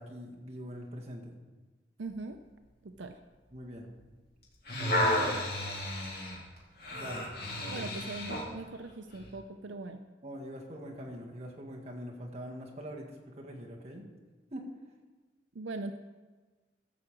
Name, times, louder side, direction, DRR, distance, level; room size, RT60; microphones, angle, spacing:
voice 1, 0.0-1.4 3.5-3.9 4.8-5.5 6.9-7.3 7.7-7.9 10.2-14.1 14.5-14.7, equal, 35° right, -1 dB, 1.8 m, -43 dB
voice 2, 2.0-2.4 2.8-3.2 7.7-10.0 15.5-15.9, right 3 dB, 85° right, 7 dB, 0.6 m, -40 dB
sound 1, 4.4-8.5 9.2-9.3, left 1 dB, 55° left, 2.7 m, -32 dB
14.5 x 5.0 x 7.3 m, 1.3 s
head